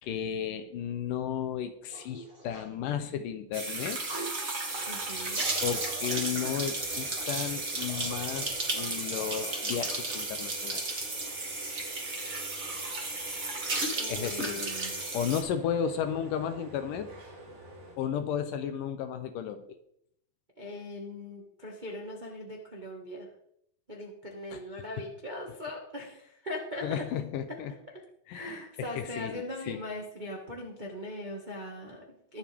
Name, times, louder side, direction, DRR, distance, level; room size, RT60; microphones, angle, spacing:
voice 1, 0.0-4.0 5.6-10.8 14.1-14.6 15.1-17.1 18.0-19.6 24.5-24.6 26.8-27.7 28.3-28.6 29.0-29.8, left 8 dB, 75° left, 9 dB, 2.1 m, -33 dB
sound 1, 1.9-2.7 4.0-4.3 5.4-10.2, right 1 dB, 10° right, 2.8 m, -45 dB
sound 2, 3.5-15.4, right 2 dB, 30° right, 1.7 m, -34 dB
sound 3, 4.7-18.0, right 2 dB, 50° right, 4.7 m, -49 dB
voice 2, 4.9-5.4 13.9-15.1 20.6-23.3 23.9-27.1 27.5-27.6 28.3-32.4, left 1 dB, 80° right, -1 dB, 0.4 m, -40 dB
22.5 x 7.5 x 3.6 m, 0.73 s
omnidirectional pair, 4.4 m